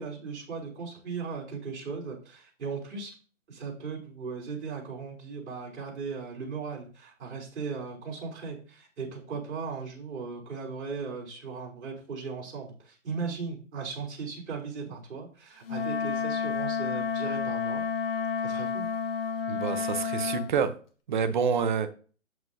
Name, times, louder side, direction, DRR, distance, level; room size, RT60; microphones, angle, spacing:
voice 1, 0.0-3.1 3.5-17.8 18.4-18.9, right 5 dB, 60° right, 3.5 m, -37 dB
Wind instrument woodwind instrument, 15.7-20.5, left 6 dB, 45° left, 1.6 m, -30 dB
voice 2, 19.5-20.7 21.1-21.9, right 6 dB, 40° right, 0.8 m, -27 dB
7.8 x 7.6 x 2.7 m
hypercardioid pair, 160°, 39 cm